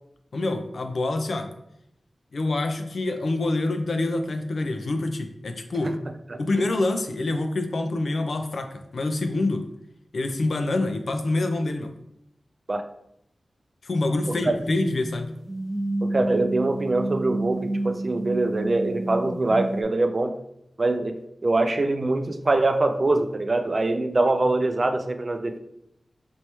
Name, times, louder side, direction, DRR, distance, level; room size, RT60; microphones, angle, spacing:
voice 1, 0.3-1.5 2.3-6.0 6.4-9.7 10.1-11.9 13.8-15.3, left 2 dB, 75° left, 6 dB, 0.5 m, -26 dB
sound 1, 14.5-19.8, right 2 dB, 10° right, 0.7 m, -30 dB
voice 2, 16.0-20.4 20.8-25.6, right 2 dB, 45° right, 7 dB, 0.4 m, -24 dB
4.3 x 3.2 x 3.0 m, 0.78 s
wide cardioid pair, 70°, 0 cm